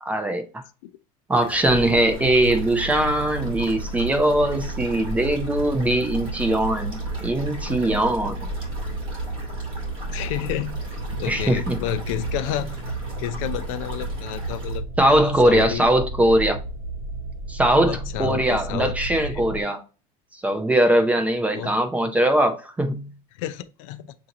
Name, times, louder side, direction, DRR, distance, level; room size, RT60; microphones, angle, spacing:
voice 1, 0.0-0.5 1.3-8.5 11.3-11.8 15.0-16.6 17.5-19.8 20.4-23.1, right 1 dB, 10° right, 0.4 m, -21 dB
sound 1, 1.3-14.8, right 1 dB, 30° right, 2.0 m, -40 dB
sound 2, 1.6-19.6, right 2 dB, 50° right, 1.3 m, -32 dB
voice 2, 10.1-12.7 13.2-15.9 17.9-19.4 21.5-21.7 23.3-24.1, left 12 dB, 60° left, 0.5 m, -31 dB
6.7 x 2.6 x 2.8 m
supercardioid pair, 165°, 19 cm